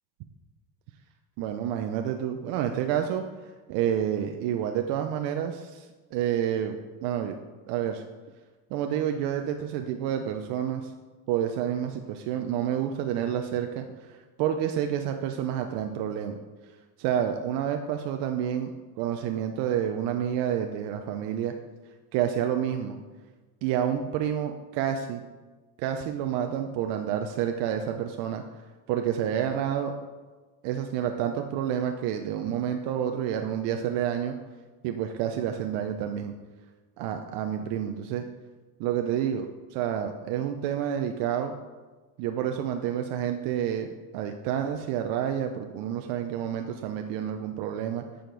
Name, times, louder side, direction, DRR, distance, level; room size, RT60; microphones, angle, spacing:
voice 1, 1.4-3.2 3.7-6.8 7.0-7.4 7.7-8.0 8.7-10.9 11.3-16.4 17.0-18.7 19.0-21.5 22.1-23.0 23.6-25.2 25.8-28.4 28.9-29.9 30.6-34.3 34.8-36.3 37.0-38.2 38.8-41.5 42.2-48.0, right 9 dB, 60° right, 5 dB, 0.7 m, -29 dB
8.9 x 5.2 x 3.9 m, 1.3 s
supercardioid pair, 115°, 47 cm